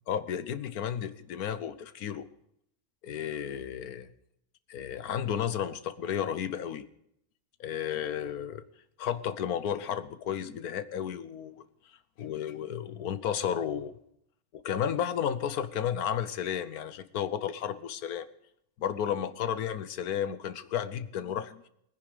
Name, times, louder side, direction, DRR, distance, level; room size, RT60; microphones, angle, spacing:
voice 1, 0.1-2.3 3.0-4.1 4.7-6.8 7.6-8.6 9.0-11.6 12.2-14.0 14.5-18.3 18.8-21.6, left 9 dB, 90° left, 13 dB, 1.4 m, -33 dB
20.5 x 9.9 x 5.0 m, 0.74 s
omnidirectional pair, 1.5 m